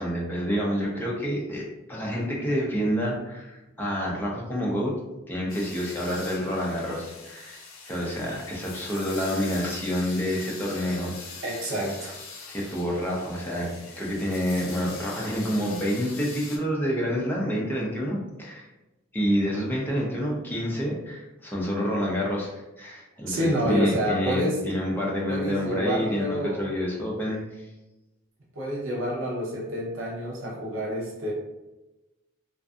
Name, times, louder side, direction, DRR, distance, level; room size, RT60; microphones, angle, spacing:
voice 1, 0.0-4.9 5.3-11.2 12.5-13.7 14.0-18.7 19.1-27.7, equal, 10° left, -4 dB, 0.5 m, -28 dB
sound 1, 5.5-16.6, left 4 dB, 80° left, 0.6 m, -43 dB
voice 2, 11.4-12.1 23.3-24.6 25.3-26.7 28.5-31.3, equal, 70° right, -4 dB, 0.7 m, -28 dB
2.5 x 2.4 x 2.3 m, 1.0 s
head